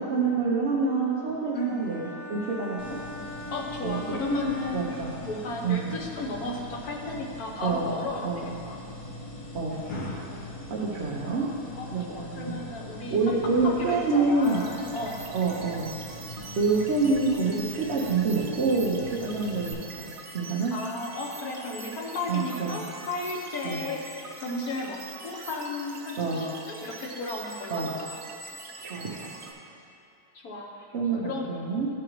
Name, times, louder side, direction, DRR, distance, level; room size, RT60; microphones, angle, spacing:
voice 1, 0.1-3.0 3.8-4.0 4.3-4.4 4.7-5.1 5.6-5.9 7.6-7.9 8.2-8.5 9.5-9.8 10.7-11.5 11.9-12.5 13.1-14.6 15.3-15.9 16.6-20.1 20.3-20.7 22.3-22.8 23.6-23.8 26.2-26.4 27.7-27.9 28.8-29.3 30.9-31.9, right 4 dB, 50° right, -5 dB, 1.0 m, -27 dB
sound 1, 1.6-5.4, left 1 dB, 35° left, 1.1 m, -41 dB
sound 2, 2.8-19.7, left 1 dB, 85° left, 1.7 m, -41 dB
voice 2, 3.5-4.9 5.2-8.3 8.7-8.8 11.8-13.4 13.6-15.2 20.7-24.0 24.4-25.0 25.2-27.8 30.4-30.9 31.2-31.5, left 2 dB, 70° left, -2 dB, 1.4 m, -34 dB
sound 3, 14.4-29.5, right 3 dB, 90° right, 1.5 m, -44 dB
13.5 x 4.9 x 3.1 m, 2.7 s
omnidirectional pair, 1.7 m